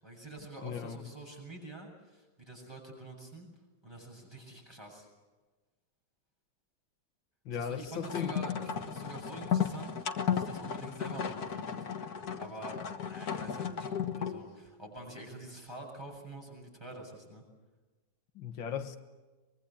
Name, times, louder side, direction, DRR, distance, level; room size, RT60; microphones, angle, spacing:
voice 1, 0.0-3.5 3.8-5.1 7.5-11.9 12.4-17.4, right 2 dB, 10° right, 7.8 m, -47 dB
voice 2, 0.6-1.1 7.5-8.3 18.4-19.0, left 7 dB, 85° left, 2.0 m, -37 dB
sound 1, 8.0-14.5, left 8 dB, 55° left, 1.8 m, -34 dB
24.0 x 23.0 x 8.7 m
omnidirectional pair, 2.0 m